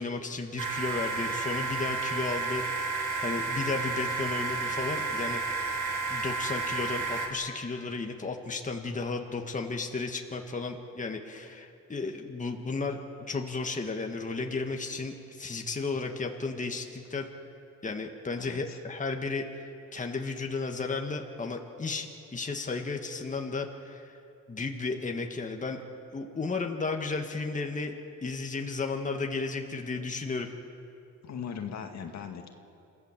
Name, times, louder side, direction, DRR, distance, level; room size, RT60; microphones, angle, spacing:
voice 1, 0.0-5.4 6.1-13.0 13.3-17.3 17.8-24.2 24.5-25.8 26.1-27.9 28.2-30.5, left 3 dB, 25° left, 3 dB, 1.8 m, -34 dB
sound 1, 0.6-7.3, right 4 dB, 90° right, 2.6 m, -31 dB
voice 2, 18.4-18.8 31.2-32.5, left 7 dB, 65° left, 4 dB, 2.1 m, -39 dB
27.5 x 15.0 x 7.5 m, 2.7 s
cardioid pair, 90°, 30 cm